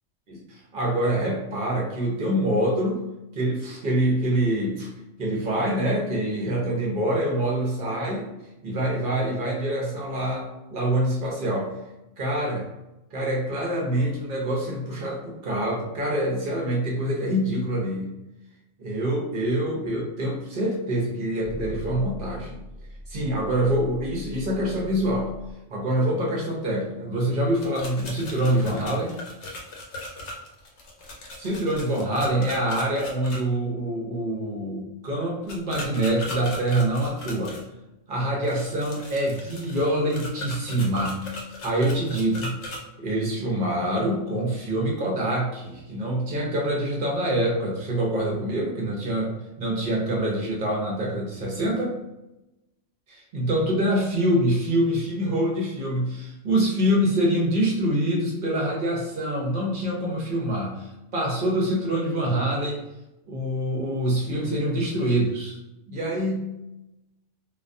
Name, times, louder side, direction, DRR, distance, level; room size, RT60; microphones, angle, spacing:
voice 1, 0.3-3.0 3.3-4.9 5.2-8.3 8.6-11.8 12.2-12.7 13.1-18.1 18.8-22.6 23.1-25.3 25.7-29.2 31.4-37.6 38.1-41.3 41.6-42.6 43.0-52.0 53.1-60.9 61.1-62.8 63.3-65.6 65.9-66.5, right 1 dB, 55° right, -2 dB, 0.7 m, -25 dB
sound 1, 21.4-25.5, equal, 30° left, 0.6 m, -40 dB
sound 2, 27.5-33.4 35.5-37.6 38.4-42.8, left 2 dB, 80° left, 1.0 m, -38 dB
2.3 x 2.2 x 2.5 m, 0.94 s
omnidirectional pair, 1.3 m